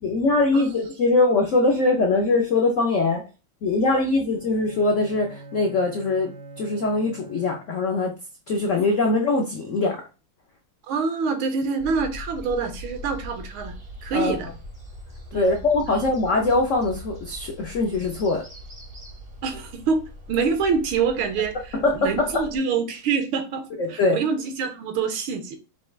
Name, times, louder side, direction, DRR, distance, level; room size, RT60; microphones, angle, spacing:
voice 1, 0.0-3.2 3.6-6.3 6.6-8.1 8.5-10.0 14.1-14.4 15.3-18.4 21.7-22.4 23.8-24.2, left 3 dB, 85° left, 1 dB, 0.6 m, -22 dB
Bowed string instrument, 4.3-8.0, right 2 dB, 70° right, 1.0 m, -43 dB
voice 2, 10.9-13.8 14.0-14.5 15.3-15.5 15.9-16.0 19.4-25.6, right 5 dB, 85° right, 6 dB, 1.6 m, -26 dB
sound 1, 11.8-22.6, equal, 40° right, 0.5 m, -41 dB
5.7 x 2.3 x 3.1 m, 0.32 s
omnidirectional pair, 2.2 m